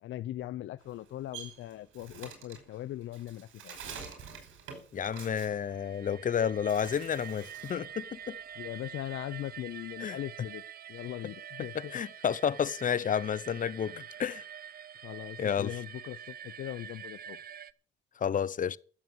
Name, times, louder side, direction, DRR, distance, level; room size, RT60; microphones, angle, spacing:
voice 1, 0.0-3.8 8.6-10.6 10.9-12.0 13.9-14.0 15.0-17.4, left 13 dB, 80° left, 0.8 m, -40 dB
Bird, 0.8-6.3 6.6-7.9 8.2-9.9, right 6 dB, 80° right, 5.5 m, -48 dB
voice 2, 4.9-8.4 10.0-10.2 11.7-14.4 15.4-15.7 18.2-18.8, left 8 dB, 40° left, 0.7 m, -31 dB
sound 1, 5.5-17.7, right 9 dB, 50° right, 0.7 m, -46 dB
14.5 x 7.7 x 7.2 m
cardioid pair, 90°, 20 cm